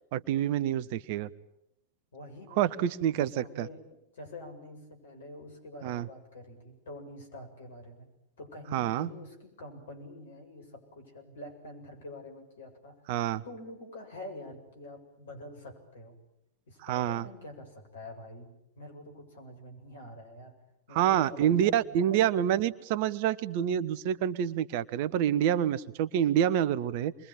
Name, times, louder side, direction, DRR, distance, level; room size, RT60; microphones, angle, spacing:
voice 1, 0.1-1.3 2.6-3.7 5.8-6.1 8.7-9.1 13.1-13.4 16.8-17.3 20.9-27.1, right 10 dB, 50° right, 17 dB, 1.0 m, -27 dB
voice 2, 2.1-2.8 3.1-8.1 8.4-16.2 16.7-20.5 20.9-22.5, left 1 dB, 65° left, 4 dB, 7.6 m, -46 dB
27.5 x 22.5 x 8.9 m, 0.84 s
figure-of-eight pair, 90°, 0 cm